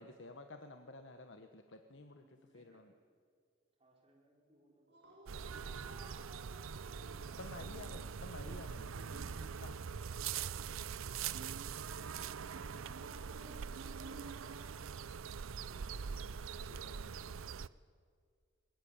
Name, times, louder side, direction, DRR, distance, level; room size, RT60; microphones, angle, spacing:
voice 1, 0.0-2.2 2.5-2.9 7.4-9.8 15.6-17.4, left 2 dB, 65° left, 7 dB, 1.2 m, -53 dB
voice 2, 2.0-3.1 3.8-5.0, right 1 dB, 30° right, -2 dB, 5.3 m, -70 dB
voice 3, 4.9-7.8 12.7-14.7, right 1 dB, 60° right, -4 dB, 7.4 m, -58 dB
sound 1, 5.3-17.7, right 6 dB, 90° right, 0.5 m, -43 dB
21.0 x 20.5 x 8.8 m, 2.1 s
head